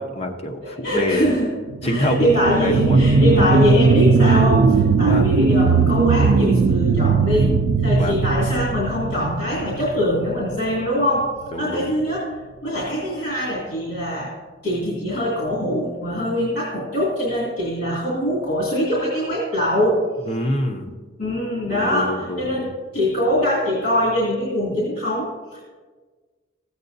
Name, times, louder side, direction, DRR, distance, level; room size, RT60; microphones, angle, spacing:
voice 1, 0.0-1.3 1.8-2.3 2.6-3.5 5.0-5.3 8.0-8.3 11.5-11.9 20.3-20.9 21.7-22.7, left 1 dB, 35° left, 3 dB, 0.8 m, -26 dB
voice 2, 0.6-1.5 1.8-7.5 7.8-11.3 11.6-14.3 14.6-20.0 21.2-25.6, equal, 55° left, -6 dB, 2.5 m, -23 dB
sound 1, 1.7-10.8 11.2-11.3, right 4 dB, 80° right, 0.4 m, -18 dB
15.0 x 8.1 x 2.7 m, 1.4 s
head